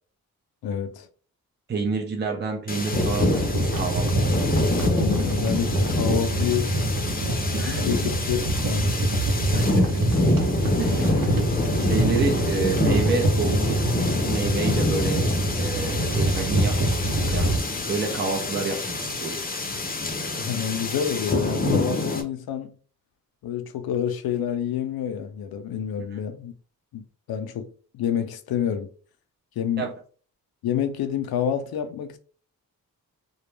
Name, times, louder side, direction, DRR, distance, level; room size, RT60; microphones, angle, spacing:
voice 1, 0.6-1.1 4.8-6.9 7.6-8.9 20.4-22.7 23.4-26.5 26.9-28.9 29.6-29.9 30.6-32.2, left 8 dB, 75° left, 0.5 m, -28 dB
voice 2, 1.7-3.4 3.7-4.5 7.5-7.9 9.5-10.0 10.8-11.5 11.8-13.8 14.2-15.3 15.5-16.9 17.3-17.5 17.9-19.4 26.1-26.2 29.8-29.9, right 4 dB, 30° right, 0.6 m, -29 dB
sound 1, 2.7-22.2, left 2 dB, 25° left, 0.6 m, -27 dB
sound 2, 2.9-17.6, right 1 dB, 65° right, 0.8 m, -25 dB
2.2 x 2.0 x 3.1 m
cardioid pair, 55°, 36 cm